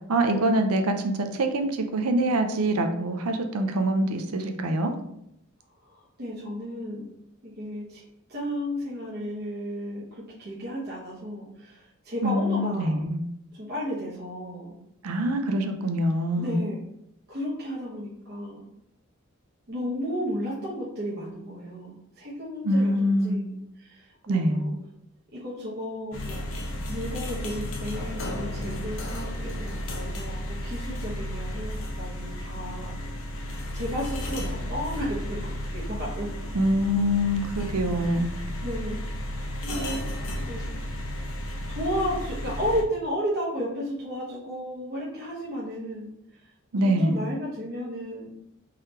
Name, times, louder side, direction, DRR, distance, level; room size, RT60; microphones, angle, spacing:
voice 1, 0.1-4.9 12.2-13.2 15.0-16.6 22.6-23.4 24.3-24.6 36.5-38.3 46.7-47.2, right 1 dB, 85° right, 6 dB, 0.5 m, -24 dB
voice 2, 6.2-7.1 7.4-8.0 8.3-13.0 13.6-14.7 16.4-16.8 17.3-18.6 19.7-24.7 25.3-26.5 26.9-33.0 33.5-36.3 38.0-38.2 38.6-39.0 39.6-40.0 40.4-40.7 41.7-46.1 46.8-48.3, equal, 50° right, -7 dB, 0.9 m, -33 dB
sound 1, 26.1-42.8, left 1 dB, 65° left, 0.6 m, -33 dB
3.8 x 3.2 x 2.8 m, 0.77 s
head